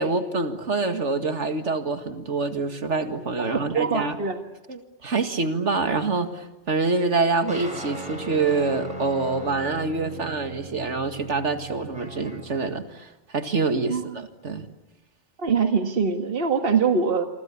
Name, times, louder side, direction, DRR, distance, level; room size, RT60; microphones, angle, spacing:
voice 1, 0.0-4.2 4.7-14.7, right 3 dB, 80° right, 7 dB, 2.3 m, -26 dB
voice 2, 3.4-4.4 13.9-14.0 15.4-17.3, right 5 dB, 55° right, 5 dB, 1.9 m, -23 dB
sound 1, 7.5-12.6, right 3 dB, 5° right, 7.8 m, -38 dB
28.0 x 24.5 x 8.6 m, 1.0 s
omnidirectional pair, 1.2 m